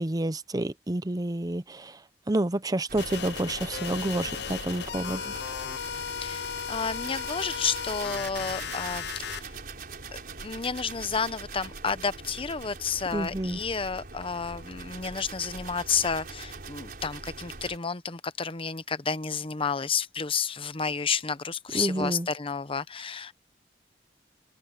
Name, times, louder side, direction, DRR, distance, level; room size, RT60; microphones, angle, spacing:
voice 1, 0.0-2.0 2.3-5.4 13.1-13.6 21.7-22.3, right 1 dB, 20° right, 0.7 m, -29 dB
sound 1, 2.9-17.8, right 3 dB, 55° right, 4.4 m, -42 dB
sound 2, 3.0-9.4, left 7 dB, 70° left, 0.7 m, -36 dB
voice 2, 6.2-9.5 10.1-23.3, left 5 dB, 30° left, 0.8 m, -31 dB
head